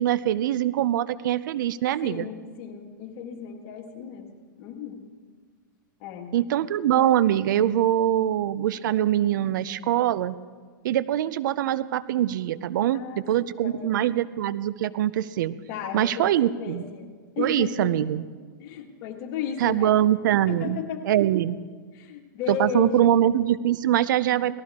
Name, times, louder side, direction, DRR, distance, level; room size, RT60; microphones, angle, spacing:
voice 1, 0.0-2.3 6.3-10.3 10.8-13.0 13.3-15.5 15.9-16.8 17.4-18.2 19.6-20.8 21.0-21.6 22.5-24.6, right 11 dB, 65° right, 16 dB, 0.6 m, -23 dB
voice 2, 2.0-4.3 4.6-5.0 6.0-6.3 12.9-14.0 15.7-18.1 18.6-20.0 20.5-21.0 21.9-23.2, left 7 dB, 45° left, 3 dB, 2.0 m, -34 dB
19.0 x 14.0 x 3.6 m, 1.5 s
hypercardioid pair, 130°, 11 cm